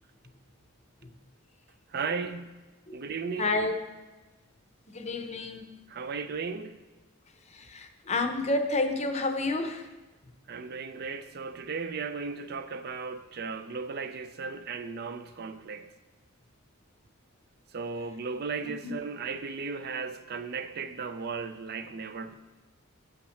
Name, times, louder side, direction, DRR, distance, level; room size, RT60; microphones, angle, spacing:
voice 1, 1.9-2.6 2.9-3.6 5.9-6.8 10.5-15.9 17.7-22.3, right 5 dB, 45° right, 10 dB, 0.4 m, -36 dB
voice 2, 3.4-3.8 4.9-5.7 7.5-9.9 18.6-18.9, left 2 dB, 30° left, 6 dB, 0.7 m, -30 dB
7.9 x 5.8 x 6.4 m, 1.2 s
head